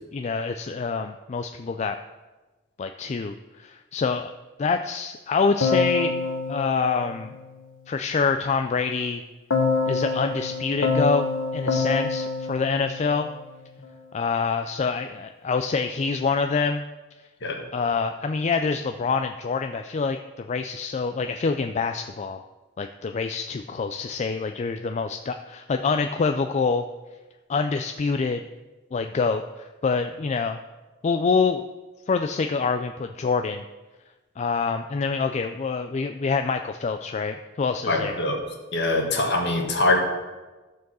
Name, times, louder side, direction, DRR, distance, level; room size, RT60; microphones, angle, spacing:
voice 1, 0.1-2.0 2.8-4.3 4.6-6.2 6.5-7.3 7.9-9.2 9.9-13.3 14.1-16.8 17.7-22.4 22.8-26.8 27.5-28.4 28.9-30.6 31.0-31.6 32.1-33.6 34.4-38.2, left 4 dB, 35° left, 7 dB, 0.4 m, -26 dB
Keyboard (musical), 5.6-7.9 9.5-13.8, left 4 dB, 80° left, 1.3 m, -27 dB
voice 2, 37.9-38.4 38.7-40.0, left 2 dB, 60° left, 1 dB, 1.8 m, -23 dB
14.0 x 4.7 x 6.2 m, 1.2 s
head